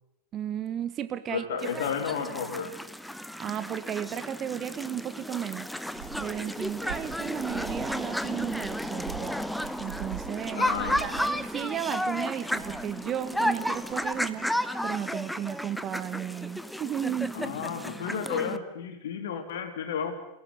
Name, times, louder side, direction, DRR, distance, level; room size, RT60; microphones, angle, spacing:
voice 1, 0.3-1.4 3.4-5.7 6.2-9.4 9.8-10.6 11.0-14.4 14.8-17.5, right 10 dB, 30° right, 12 dB, 1.4 m, -34 dB
voice 2, 1.3-2.8 10.5-11.2 17.3-20.2, left 7 dB, 60° left, 7 dB, 3.4 m, -32 dB
sound 1, 1.6-18.6, equal, ahead, 1.0 m, -33 dB
sound 2, 5.7-14.6, right 10 dB, 60° right, 2.4 m, -45 dB
28.0 x 16.0 x 9.4 m, 0.89 s
figure-of-eight pair, 90°, 0 cm